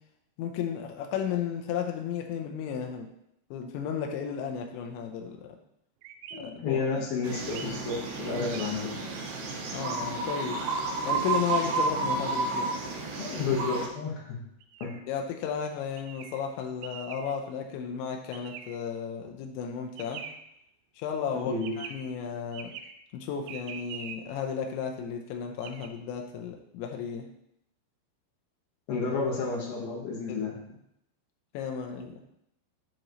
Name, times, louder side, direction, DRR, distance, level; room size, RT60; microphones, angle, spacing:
voice 1, 0.4-3.1 3.5-5.5 6.4-7.0 7.7-7.8 8.3-8.5 9.7-10.6 11.1-12.7 15.1-20.2 21.0-22.7 23.1-27.3 30.3-30.6 31.5-32.2, left 7 dB, 80° left, 2 dB, 2.8 m, -34 dB
sound 1, 6.0-6.4 7.3-7.7 8.3-8.7 14.6-15.0 16.0-16.4 16.8-17.3 18.3-18.8 20.0-20.4 21.6-22.0 22.5-22.9 23.5-24.2 25.6-25.9, right 7 dB, 90° right, 3.2 m, -43 dB
voice 2, 6.3-9.0 13.2-14.4 14.8-14.9 21.3-21.7 28.9-30.5, left 4 dB, 65° left, -2 dB, 2.7 m, -31 dB
sound 2, 7.2-13.9, right 3 dB, 70° right, 2.7 m, -31 dB
7.7 x 7.5 x 3.1 m, 0.79 s
omnidirectional pair, 5.7 m